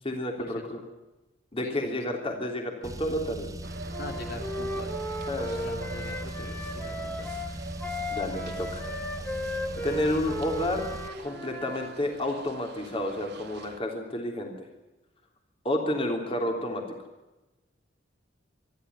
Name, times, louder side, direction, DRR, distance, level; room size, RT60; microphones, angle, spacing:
voice 1, 0.0-0.8 1.5-3.5 5.3-5.6 8.1-8.9 9.8-10.8 11.2-14.5 15.6-16.8, left 1 dB, 30° left, 3 dB, 3.3 m, -30 dB
voice 2, 1.6-2.0 4.0-4.9 5.5-7.3 9.8-10.0, left 1 dB, 55° left, 3 dB, 3.3 m, -42 dB
Car, 2.8-11.1, right 1 dB, 20° right, 0.9 m, -39 dB
sound 1, 3.6-13.8, right 4 dB, 60° right, 2.0 m, -44 dB
Wind instrument woodwind instrument, 3.9-11.9, left 1 dB, 10° left, 1.8 m, -36 dB
27.0 x 12.0 x 9.7 m, 1.1 s
head